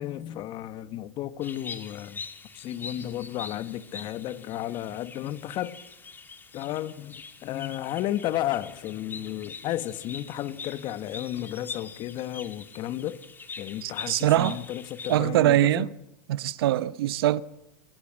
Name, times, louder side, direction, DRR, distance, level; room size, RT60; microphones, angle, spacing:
voice 1, 0.0-2.2 2.5-5.8 6.5-13.2 13.6-15.9, left 13 dB, 40° left, 1.3 m, -33 dB
sound 1, 1.4-15.2, left 5 dB, 15° left, 2.1 m, -43 dB
voice 2, 13.8-14.6 15.1-15.9 16.3-17.4, right 14 dB, 75° right, 0.9 m, -23 dB
29.5 x 23.0 x 7.5 m
supercardioid pair, 135°, 12 cm